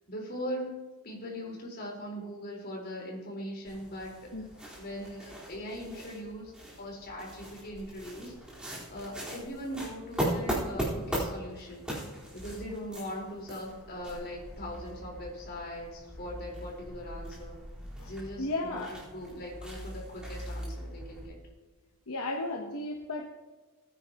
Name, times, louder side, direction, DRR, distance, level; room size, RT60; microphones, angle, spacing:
voice 1, 0.1-4.5 4.8-6.5 6.8-8.4 8.9-11.9 12.3-17.6 18.0-21.4, equal, 45° left, -2 dB, 4.4 m, -40 dB
sound 1, 3.6-21.3, right 1 dB, 5° right, 4.1 m, -39 dB
voice 2, 18.4-19.0 22.1-23.3, left 2 dB, 70° left, 2 dB, 1.1 m, -34 dB
19.5 x 10.0 x 3.0 m, 1.3 s
head